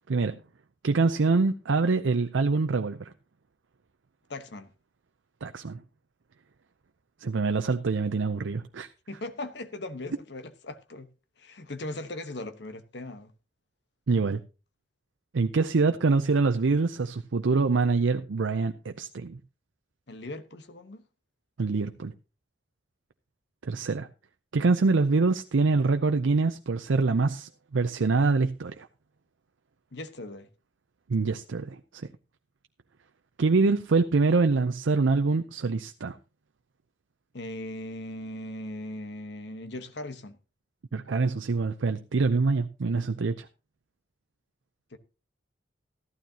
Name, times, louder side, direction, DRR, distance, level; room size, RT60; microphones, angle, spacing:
voice 1, 0.8-3.1 5.4-5.8 7.2-8.9 14.1-14.4 15.3-19.4 21.6-22.1 23.6-24.1 24.5-28.9 31.1-31.8 33.4-36.2 40.9-43.5, right 4 dB, 85° right, 0.6 m, -25 dB
voice 2, 4.3-4.7 9.1-11.1 11.4-13.3 20.1-21.0 29.9-30.5 37.3-40.4 44.9-45.0, left 1 dB, 65° left, 1.1 m, -39 dB
14.0 x 12.0 x 2.8 m
head